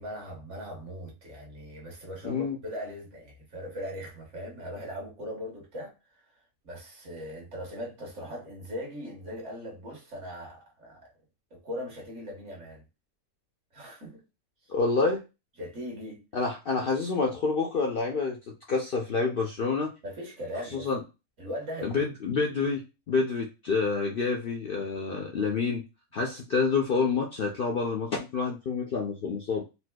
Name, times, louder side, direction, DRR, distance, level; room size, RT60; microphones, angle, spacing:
voice 1, 0.0-5.9 6.6-11.1 11.5-12.8 13.7-14.2 15.6-16.2 20.0-20.9 21.4-22.0, equal, 55° right, 1.4 m, -39 dB
voice 2, 2.2-2.6 14.7-15.2 16.3-18.4 18.7-19.9 20.7-21.0 21.8-25.8 26.1-29.6, left 4 dB, 65° left, 0.5 m, -28 dB
4.2 x 2.4 x 2.2 m
omnidirectional pair, 1.6 m